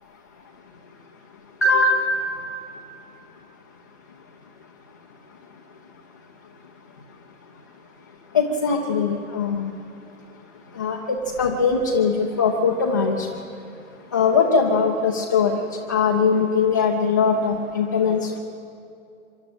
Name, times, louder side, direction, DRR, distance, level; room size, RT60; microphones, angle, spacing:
voice 1, 1.6-2.4 8.3-9.7 10.7-13.4 14.1-15.6 15.9-18.4, left 4 dB, 15° left, -1 dB, 0.5 m, -21 dB
25.0 x 12.0 x 8.7 m, 2.6 s
figure-of-eight pair, 130°, 41 cm